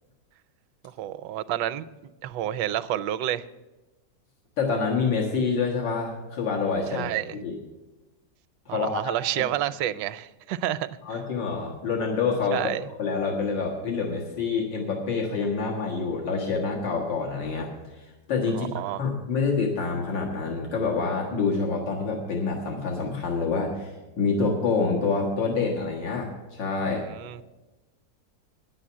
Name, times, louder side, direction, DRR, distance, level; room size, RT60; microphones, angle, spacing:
voice 1, 0.8-3.4 6.9-7.4 8.7-11.0 12.5-12.9 18.5-19.0 26.9-27.4, right 12 dB, 80° right, 15 dB, 1.2 m, -30 dB
voice 2, 4.6-7.1 7.4-7.6 8.7-9.4 11.0-12.7 13.0-18.7 19.0-27.0, left 4 dB, 90° left, -1 dB, 2.3 m, -27 dB
10.0 x 7.8 x 8.5 m, 1.1 s
omnidirectional pair, 1.9 m